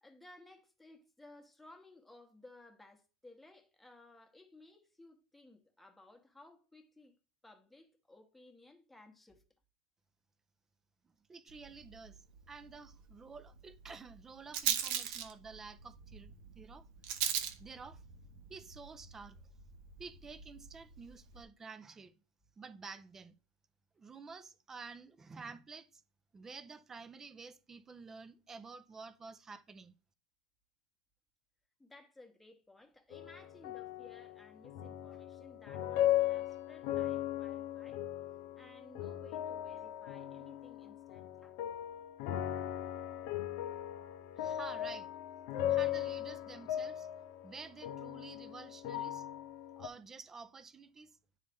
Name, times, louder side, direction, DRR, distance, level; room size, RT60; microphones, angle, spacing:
voice 1, 0.0-7.1 7.4-9.4 31.8-38.0 38.6-41.6, left 2 dB, 5° left, 1.0 m, -58 dB
voice 2, 11.3-12.2 12.5-16.8 17.6-18.0 18.5-19.4 20.0-22.1 22.6-23.3 24.0-26.0 26.3-29.9 44.4-45.1 45.7-47.1 47.4-49.3 49.8-51.1, right 4 dB, 20° right, 0.6 m, -50 dB
Rattle, 11.5-21.4, right 9 dB, 55° right, 0.8 m, -41 dB
sound 1, 33.1-49.9, left 12 dB, 55° left, 0.6 m, -38 dB
9.4 x 4.1 x 3.4 m
hypercardioid pair, 110°, 2 cm